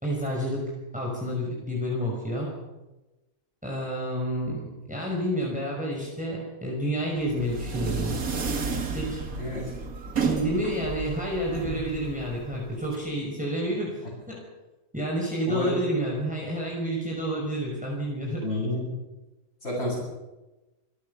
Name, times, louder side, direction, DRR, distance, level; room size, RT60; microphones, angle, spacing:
voice 1, 0.0-0.6 0.9-2.5 3.6-8.3 8.9-9.3 10.2-14.4 14.9-18.4, equal, 5° right, -3 dB, 5.9 m, -29 dB
sound 1, 7.2-13.0, right 4 dB, 65° right, 2.5 m, -32 dB
voice 2, 9.3-9.7 15.5-15.8 18.4-18.9 19.6-20.0, left 1 dB, 45° left, -6 dB, 8.1 m, -29 dB
27.0 x 17.0 x 7.2 m, 1.1 s
omnidirectional pair, 1.6 m